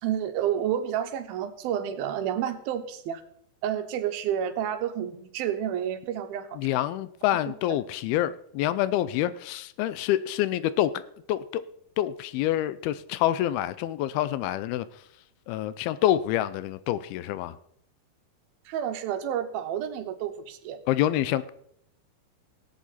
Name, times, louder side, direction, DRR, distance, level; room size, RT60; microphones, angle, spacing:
voice 1, 0.0-3.2 3.6-6.6 18.7-20.8, right 10 dB, 75° right, 9 dB, 2.6 m, -30 dB
voice 2, 6.6-11.0 11.3-11.6 12.0-15.0 15.5-17.6 20.9-21.5, left 13 dB, 80° left, 15 dB, 2.4 m, -27 dB
17.5 x 8.4 x 4.1 m, 0.71 s
omnidirectional pair, 4.5 m